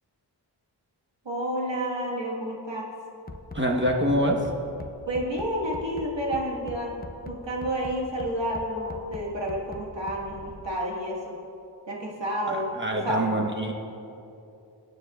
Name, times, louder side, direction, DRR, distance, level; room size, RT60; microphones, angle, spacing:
voice 1, 1.3-2.9 5.1-11.4 11.9-13.3, equal, 75° right, -3 dB, 1.8 m, -30 dB
Bass drum, 3.3-10.7, left 2 dB, 20° left, 0.6 m, -41 dB
voice 2, 3.5-4.5 12.5-13.7, equal, 25° right, 0 dB, 1.2 m, -25 dB
19.0 x 9.3 x 2.4 m, 2.7 s
wide cardioid pair, 45°, 44 cm